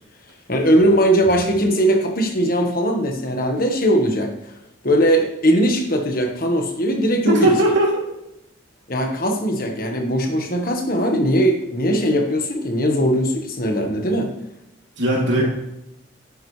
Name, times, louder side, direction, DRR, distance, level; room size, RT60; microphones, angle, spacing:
voice 1, 0.5-4.3 4.8-7.5 8.9-14.3, equal, 50° left, 3 dB, 1.5 m, -19 dB
voice 2, 7.3-8.0 15.0-15.5, right 1 dB, 65° right, -3 dB, 3.1 m, -18 dB
10.0 x 9.8 x 3.3 m, 0.83 s
head